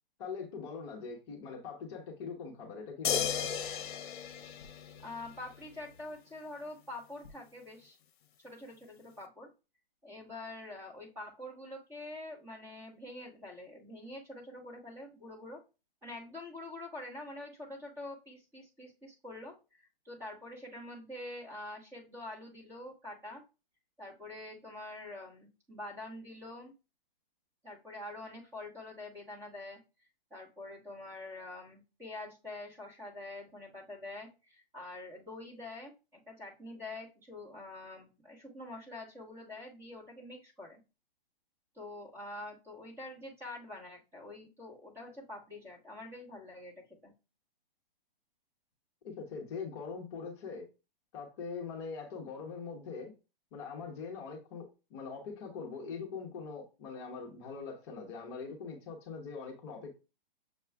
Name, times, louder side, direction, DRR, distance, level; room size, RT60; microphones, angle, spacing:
voice 1, 0.2-3.7 49.0-50.7 51.1-53.1 53.5-59.9, left 5 dB, 30° left, 0.9 m, -42 dB
sound 1, 3.0-5.5 7.2-7.3, left 8 dB, 55° left, 0.9 m, -35 dB
voice 2, 5.0-8.0 8.4-9.5 10.0-15.6 16.0-23.4 24.0-26.7 27.6-29.8 30.3-40.8 41.7-46.7 47.0-47.1, left 2 dB, 10° right, 1.2 m, -46 dB
6.7 x 2.3 x 3.4 m
hypercardioid pair, 150°, 29 cm